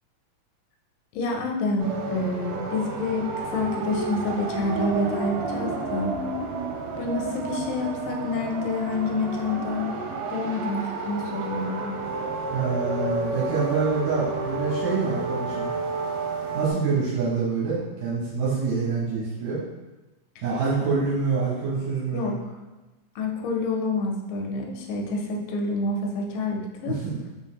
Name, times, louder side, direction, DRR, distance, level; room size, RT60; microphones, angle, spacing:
voice 1, 1.2-6.1 7.0-10.0 10.3-12.0 22.1-22.3 23.2-27.0, left 3 dB, 85° left, 1 dB, 2.3 m, -28 dB
sound 1, 1.8-16.7, right 3 dB, 80° right, 2.1 m, -31 dB
voice 2, 12.5-15.7 16.5-19.6 20.4-22.3 26.8-27.2, right 4 dB, 65° right, -6 dB, 2.0 m, -26 dB
4.9 x 3.7 x 2.8 m, 1.1 s
omnidirectional pair, 4.0 m